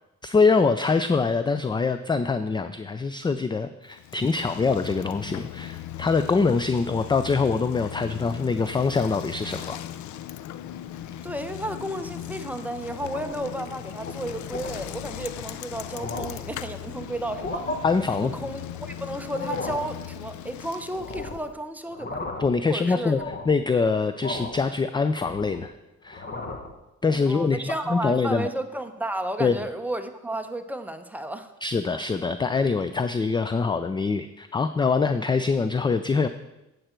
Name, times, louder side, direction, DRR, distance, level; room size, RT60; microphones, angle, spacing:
voice 1, 0.2-9.8 17.8-18.3 22.4-23.2 23.5-25.7 26.0-26.2 27.0-28.5 29.4-29.5 31.6-36.3, left 4 dB, 15° left, 11 dB, 0.3 m, -24 dB
Bicycle, 3.9-21.5, left 11 dB, 75° left, 0.5 m, -38 dB
voice 2, 11.2-17.7 18.2-22.2 22.7-23.1 27.3-31.5, right 1 dB, 5° right, 7 dB, 0.8 m, -33 dB
sound 1, 12.9-13.5 13.9-14.1 14.5-14.7 15.4-15.5 15.8-16.5 17.2-17.8 19.2-19.9 20.9-21.5 21.9-22.6 23.0-23.6 24.2-24.7 25.0-25.7 26.1-26.7, left 3 dB, 35° left, 1.2 m, -35 dB
8.7 x 7.8 x 4.5 m, 0.96 s
cardioid pair, 90°, 30 cm